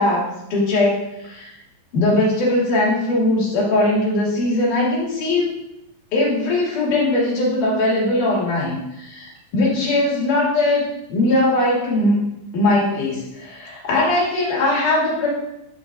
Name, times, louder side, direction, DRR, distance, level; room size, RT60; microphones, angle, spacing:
voice 1, 0.0-1.5 1.9-5.5 6.1-10.8 11.1-12.2 12.5-15.3, left 2 dB, 60° left, -4 dB, 3.6 m, -20 dB
13.0 x 5.3 x 2.5 m, 0.86 s
omnidirectional pair, 4.3 m